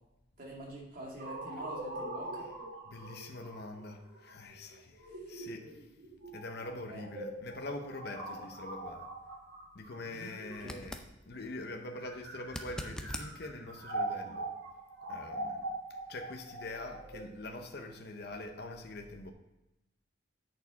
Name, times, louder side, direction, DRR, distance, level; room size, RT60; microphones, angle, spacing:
voice 1, 0.4-2.5 5.1-5.4 6.9-7.1 10.0-10.3 10.6-10.8, right 1 dB, 50° right, 2.4 m, -46 dB
sound 1, 1.2-11.0 11.8-18.7, right 2 dB, 65° right, 2.0 m, -42 dB
voice 2, 2.9-5.8 6.3-9.1 9.7-11.0 11.3-14.5 15.1-15.6 16.1-19.3, left 2 dB, 60° left, 0.8 m, -44 dB
sound 2, 10.6-11.1 12.5-13.3 16.3-16.4, left 1 dB, 5° left, 0.5 m, -41 dB
8.5 x 6.6 x 4.0 m
head